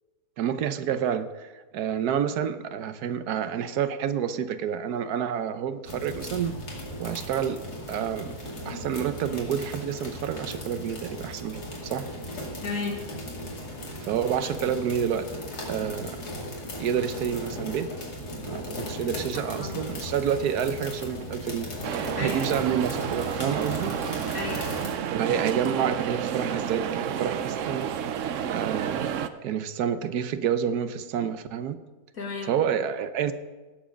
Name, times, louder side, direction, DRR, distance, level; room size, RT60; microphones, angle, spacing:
voice 1, 0.4-6.5 7.0-7.6 7.9-8.3 8.7-12.1 14.0-15.3 15.7-16.2 16.8-17.9 18.4-21.7 22.2-24.0 25.1-27.9 28.4-29.2 29.4-31.8 32.5-33.3, right 8 dB, 80° right, 11 dB, 1.2 m, -29 dB
sound 1, 5.8-24.9, left 1 dB, 75° left, 3.0 m, -37 dB
voice 2, 12.6-13.0 19.3-19.9 22.2-22.5 24.3-24.7 32.1-32.5, left 3 dB, 60° left, 1 dB, 2.4 m, -33 dB
sound 2, 21.8-29.3, right 8 dB, 60° right, 0.9 m, -30 dB
17.5 x 7.4 x 5.1 m, 1.2 s
omnidirectional pair, 1.7 m